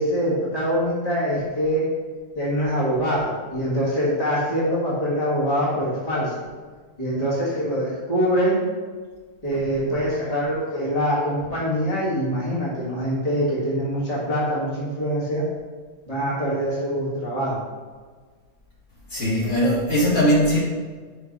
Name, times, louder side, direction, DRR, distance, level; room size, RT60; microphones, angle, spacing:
voice 1, 0.0-1.8 2.4-6.3 7.0-8.6 9.4-15.4 16.1-17.6, equal, 25° left, -7 dB, 1.8 m, -24 dB
voice 2, 19.1-20.6, equal, 50° left, -8 dB, 2.1 m, -20 dB
5.3 x 4.3 x 5.3 m, 1.5 s
omnidirectional pair, 1.6 m